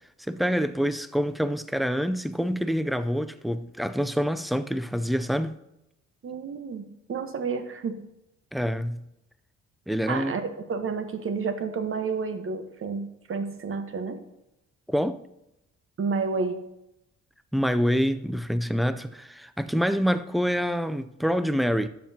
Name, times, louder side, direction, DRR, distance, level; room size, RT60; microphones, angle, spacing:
voice 1, 0.3-5.6 8.5-9.1 9.9-10.3 14.9-15.2 17.5-21.9, equal, ahead, 0.4 m, -26 dB
voice 2, 6.2-8.0 10.1-14.2 16.0-16.7, right 5 dB, 45° right, 1.1 m, -30 dB
12.0 x 7.6 x 2.8 m
cardioid pair, 90°, 30 cm